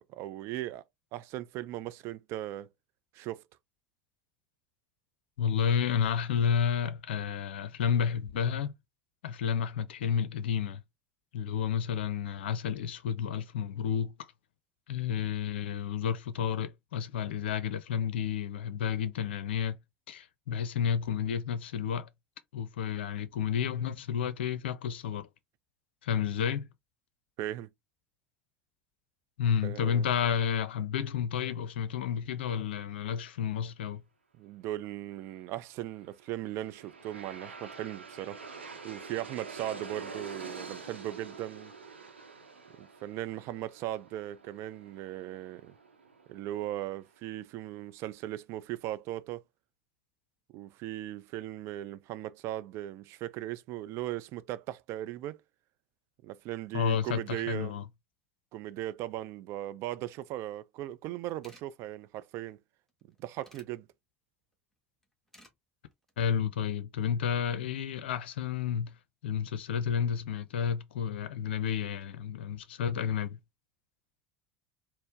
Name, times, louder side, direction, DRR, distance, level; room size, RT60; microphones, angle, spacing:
voice 1, 0.1-0.8 1.1-2.7 3.1-3.4 27.4-27.7 29.6-30.0 34.4-38.4 38.8-41.7 42.8-45.7 46.3-49.4 50.5-55.4 56.2-57.7 58.5-62.6 63.2-63.9, right 14 dB, 50° right, 0.4 m, -38 dB
voice 2, 5.4-8.7 9.2-10.8 11.3-14.1 14.9-19.8 20.1-22.1 22.5-25.3 26.0-26.7 29.4-34.0 56.7-57.8 66.2-68.9 69.2-73.4, left 7 dB, 70° left, 0.5 m, -31 dB
Aircraft, 36.0-47.1, right 4 dB, 85° right, 0.8 m, -47 dB
sound 1, 60.9-61.0 61.2-61.7 62.9-63.7 65.0-65.5 65.9-66.2, equal, 5° left, 1.2 m, -57 dB
4.2 x 2.0 x 3.4 m
figure-of-eight pair, 70°, 6 cm